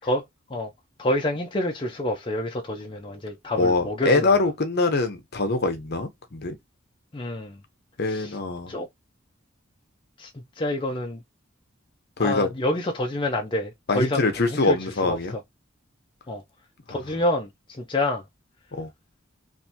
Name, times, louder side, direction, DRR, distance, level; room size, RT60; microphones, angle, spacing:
voice 1, 0.0-0.7 1.0-4.3 7.1-7.6 8.0-8.4 8.7-8.9 10.2-11.2 12.2-14.8 15.0-15.4 16.3-16.4 16.9-18.2, left 1 dB, 25° left, 0.5 m, -28 dB
voice 2, 3.6-6.6 8.0-8.7 12.2-12.5 13.9-15.4 18.7-18.9, left 3 dB, 55° left, 0.9 m, -23 dB
3.3 x 2.6 x 2.8 m
head